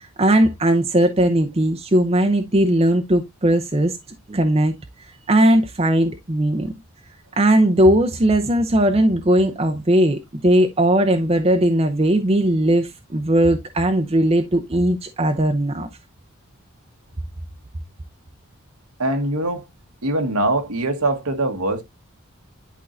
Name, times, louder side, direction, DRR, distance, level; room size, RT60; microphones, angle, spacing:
voice 1, 0.2-4.0 4.3-4.8 5.3-6.7 7.4-15.9, right 1 dB, 25° right, 0.6 m, -18 dB
voice 2, 19.0-19.6 20.0-21.8, right 2 dB, 80° right, 1.4 m, -22 dB
11.0 x 4.5 x 2.5 m
head